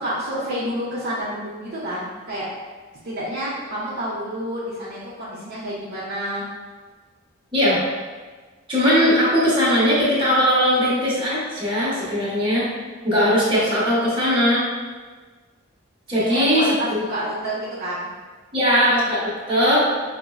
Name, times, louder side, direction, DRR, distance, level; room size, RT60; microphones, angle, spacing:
voice 1, 0.0-2.5 3.0-6.5 16.2-18.1, equal, 55° right, -8 dB, 0.6 m, -29 dB
voice 2, 7.5-7.8 8.7-12.7 13.0-14.6 16.1-16.7 18.5-19.9, equal, 25° right, -9 dB, 1.0 m, -19 dB
5.0 x 2.0 x 2.3 m, 1.4 s
head